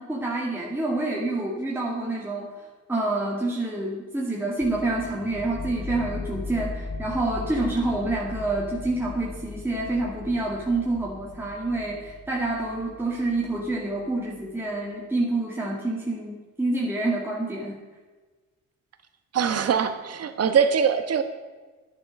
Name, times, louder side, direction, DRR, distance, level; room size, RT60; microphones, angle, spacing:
voice 1, 0.0-17.8, right 2 dB, 5° right, -3 dB, 2.1 m, -27 dB
sound 1, 4.6-14.4, left 3 dB, 35° left, 1.0 m, -38 dB
voice 2, 19.3-21.2, right 7 dB, 55° right, 9 dB, 1.4 m, -22 dB
10.5 x 10.0 x 6.5 m, 1.3 s
cardioid pair, 90°, 30 cm